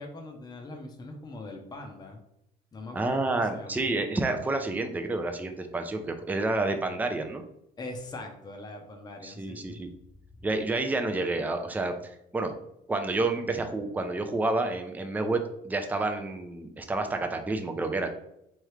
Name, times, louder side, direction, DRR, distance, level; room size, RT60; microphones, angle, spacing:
voice 1, 0.0-2.2 2.7-3.9 7.8-9.8, left 2 dB, 25° left, 3 dB, 0.7 m, -42 dB
voice 2, 2.9-7.4 9.2-9.9 10.4-12.5 12.9-18.1, right 2 dB, 10° right, 5 dB, 0.4 m, -29 dB
3.5 x 3.1 x 3.2 m, 0.79 s
cardioid pair, 110°, 17 cm